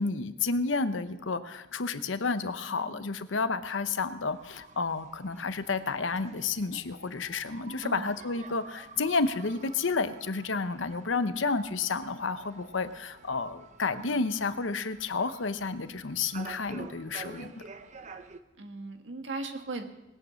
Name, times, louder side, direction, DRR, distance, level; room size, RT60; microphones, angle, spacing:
voice 1, 0.0-17.6, left 4 dB, 75° left, 11 dB, 0.9 m, -31 dB
voice 2, 2.7-3.0 7.8-8.1 14.0-14.3 18.6-19.8, right 3 dB, 75° right, 5 dB, 1.6 m, -38 dB
sound 1, 4.3-18.4, right 4 dB, 40° right, 0.8 m, -49 dB
20.0 x 8.8 x 6.4 m, 1.1 s
head